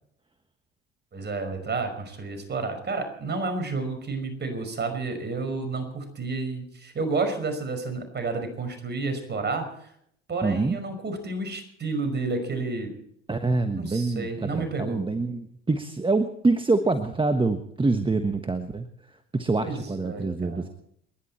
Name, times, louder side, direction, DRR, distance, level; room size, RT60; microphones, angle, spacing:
voice 1, 1.1-9.9 10.3-12.9 13.7-15.0 19.6-20.7, right 3 dB, 35° right, 7 dB, 5.6 m, -30 dB
voice 2, 10.4-10.8 13.3-18.9 19.3-20.7, right 3 dB, 15° right, 8 dB, 1.3 m, -25 dB
29.0 x 11.0 x 4.4 m, 0.71 s
hypercardioid pair, 70°, 30 cm